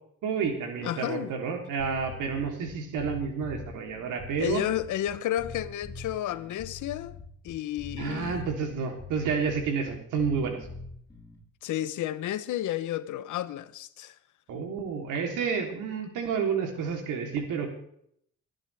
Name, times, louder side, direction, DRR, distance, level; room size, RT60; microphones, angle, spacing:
voice 1, 0.2-4.7 8.0-10.7 14.5-17.7, right 6 dB, 85° right, 3.5 m, -30 dB
voice 2, 0.8-1.3 4.4-7.2 7.4-8.4 11.6-14.2, left 13 dB, 80° left, 1.0 m, -32 dB
sound 1, 1.8-11.4, left 3 dB, 10° left, 7.0 m, -43 dB
22.5 x 10.5 x 3.5 m
cardioid pair, 90°, 30 cm